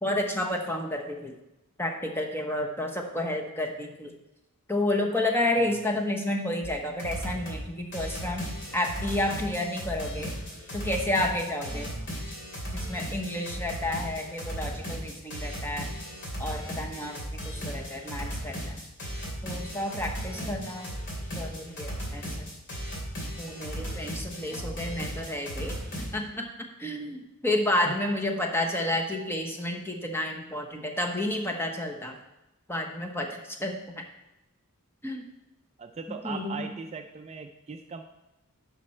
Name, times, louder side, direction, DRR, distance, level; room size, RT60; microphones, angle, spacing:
voice 1, 0.0-1.3 1.8-4.1 4.7-8.5 8.7-10.4 10.7-11.9 12.3-12.4 12.7-15.9 16.4-18.8 19.4-21.0 21.4-22.5 23.4-32.1 32.7-34.0 35.0-35.3 36.1-36.7, left 1 dB, 10° left, 1 dB, 1.0 m, -31 dB
sound 1, 6.6-6.7 7.0-7.6 7.9-26.1, equal, 55° left, 2.9 m, -36 dB
voice 2, 11.7-12.1 20.2-20.7 24.5-24.9 27.9-28.0 35.8-38.0, right 4 dB, 30° right, 6 dB, 0.4 m, -40 dB
11.0 x 5.4 x 4.4 m, 0.95 s
head